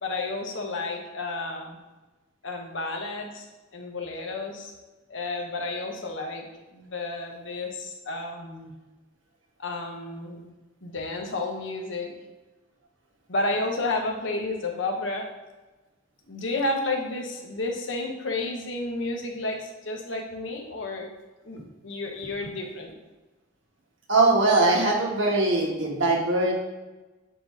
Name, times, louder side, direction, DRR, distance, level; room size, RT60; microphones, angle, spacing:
voice 1, 0.0-1.8 2.4-3.5 3.7-4.7 5.1-6.5 6.7-8.7 9.6-10.5 10.8-12.1 13.3-15.3 16.3-21.1 21.4-23.0, left 2 dB, 70° left, 2 dB, 1.0 m, -31 dB
voice 2, 24.1-26.5, right 2 dB, 70° right, 0 dB, 1.3 m, -21 dB
7.6 x 2.7 x 4.6 m, 1.1 s
head